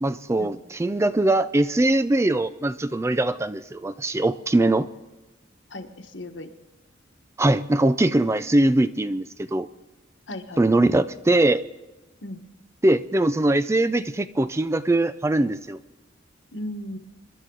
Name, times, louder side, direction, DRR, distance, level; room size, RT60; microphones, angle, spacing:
voice 1, 0.0-4.9 7.4-9.7 10.6-11.6 12.8-15.8, right 2 dB, 15° right, 13 dB, 0.4 m, -21 dB
voice 2, 5.7-6.5 10.3-10.9 12.2-12.4 16.5-17.0, left 1 dB, 70° left, 6 dB, 1.4 m, -36 dB
25.0 x 11.5 x 3.9 m, 1.1 s
head